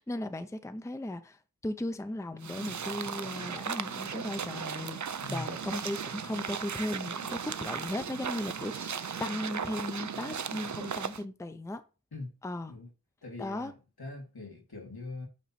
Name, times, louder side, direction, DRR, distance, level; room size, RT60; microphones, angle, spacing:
voice 1, 0.0-11.8 12.4-12.7 13.4-13.7, left 1 dB, 10° left, 0.6 m, -37 dB
sound 1, 2.4-11.2, right 7 dB, 50° right, 0.5 m, -37 dB
voice 2, 13.2-15.3, left 2 dB, 80° left, 2.3 m, -42 dB
8.4 x 3.0 x 4.2 m
wide cardioid pair, 40°, 37 cm